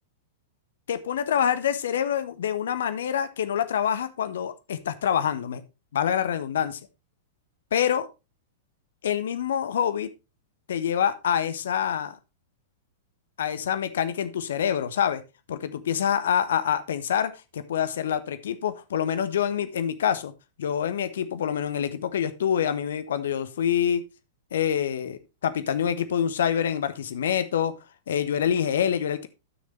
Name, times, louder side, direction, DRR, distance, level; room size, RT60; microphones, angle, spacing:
voice 1, 0.9-5.6 5.9-6.8 7.7-8.1 9.0-10.1 10.7-12.2 13.4-15.2 15.5-20.3 20.6-24.0 24.5-27.7 28.1-29.3, left 9 dB, 60° left, 12 dB, 1.1 m, -26 dB
12.0 x 6.6 x 3.2 m, 0.27 s
figure-of-eight pair, 100°, 0 cm